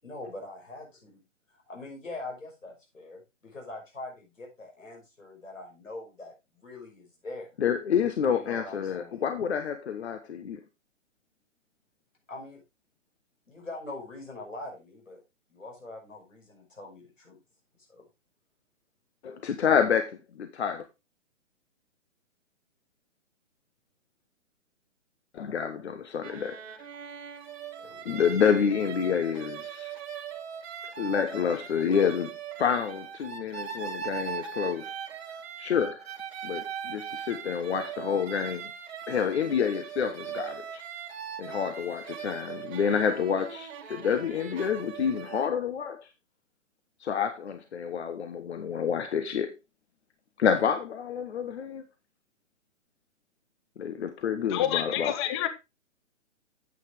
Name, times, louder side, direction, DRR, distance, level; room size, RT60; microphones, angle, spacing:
voice 1, 0.0-1.2 1.5-7.5 8.3-9.2 12.3-12.6 13.5-15.2 15.5-17.4 17.9-18.0 27.8-28.2, left 2 dB, 85° left, 5.6 m, -43 dB
voice 2, 7.6-10.6 19.2-20.8 25.3-26.8 28.0-29.9 31.0-32.3 32.6-34.9 35.6-36.1 36.4-38.7 39.1-40.8 41.4-46.1 47.0-49.5 50.4-51.8 53.8-55.2, left 7 dB, 60° left, 1.1 m, -28 dB
sound 1, 26.2-45.5, right 8 dB, 55° right, 2.2 m, -40 dB
voice 3, 54.5-55.5, left 11 dB, 25° left, 0.7 m, -28 dB
9.1 x 8.3 x 3.4 m
figure-of-eight pair, 130°, 38 cm